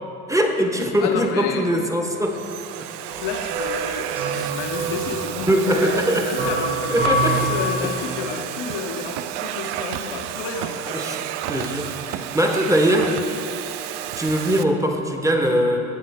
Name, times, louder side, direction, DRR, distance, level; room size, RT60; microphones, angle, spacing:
voice 1, 0.3-2.4 2.8-2.9 5.4-6.3 6.9-7.5 7.8-7.9 10.9-11.2 11.5-13.2 14.2-15.8, equal, 5° right, 3 dB, 1.4 m, -21 dB
Domestic sounds home sounds, 0.8-1.2 1.9-14.6, right 12 dB, 60° right, 0.6 m, -31 dB
voice 2, 1.0-1.7 3.2-7.2 7.5-11.2 11.6-11.8 14.7-15.0, left 5 dB, 65° left, 3 dB, 1.4 m, -31 dB
sound 1, 3.1-8.3, right 1 dB, 80° right, 2.6 m, -26 dB
16.0 x 8.8 x 3.6 m, 2.9 s
hypercardioid pair, 60°, 47 cm